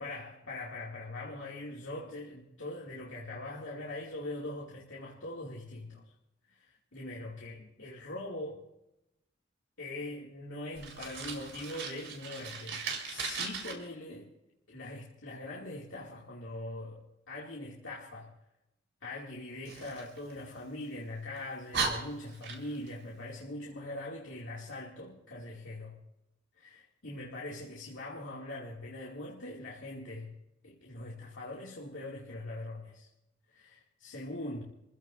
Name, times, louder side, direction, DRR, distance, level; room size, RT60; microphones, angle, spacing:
voice 1, 0.0-6.1 6.5-8.6 9.8-14.3 14.7-18.3 19.0-26.0 26.5-30.3 30.6-33.1 33.5-34.6, left 1 dB, 85° left, -4 dB, 2.5 m, -42 dB
Fire, 10.7-13.7 19.6-20.9 21.4-21.5 21.7-22.9, right 4 dB, 70° right, 4.2 m, -37 dB
28.0 x 15.5 x 2.6 m, 0.90 s
head